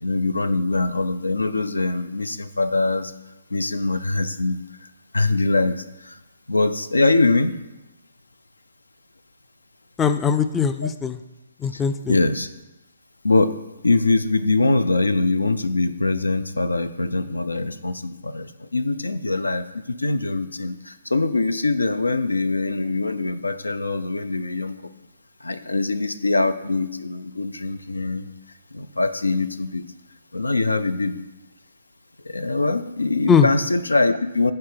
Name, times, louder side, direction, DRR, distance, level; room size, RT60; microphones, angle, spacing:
voice 1, 0.0-3.1 3.5-4.6 5.1-6.2 6.5-7.5 12.1-12.5 13.2-13.6 13.8-24.9 25.4-28.3 28.7-29.8 30.3-31.2 32.2-34.5, left 3 dB, 85° left, 13 dB, 0.4 m, -23 dB
voice 2, 10.0-11.2 11.6-12.2 33.3-33.5, left 6 dB, 15° left, 11 dB, 0.3 m, -20 dB
8.8 x 3.5 x 5.0 m, 0.98 s
figure-of-eight pair, 135°, 0 cm